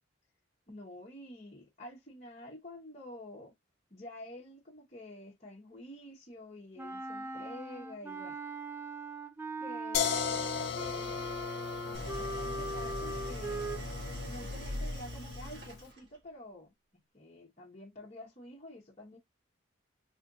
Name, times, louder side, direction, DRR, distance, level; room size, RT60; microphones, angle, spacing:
voice 1, 0.7-3.5 3.9-8.4 9.6-13.6 14.3-16.7 17.1-19.2, left 1 dB, 35° left, 1.2 m, -49 dB
Wind instrument woodwind instrument, 6.8-13.8, right 2 dB, 10° right, 0.5 m, -40 dB
sound 1, 9.9-15.8, left 7 dB, 55° left, 0.5 m, -37 dB
Idling, 11.9-16.2, equal, 55° right, 1.3 m, -41 dB
3.6 x 3.4 x 2.6 m
head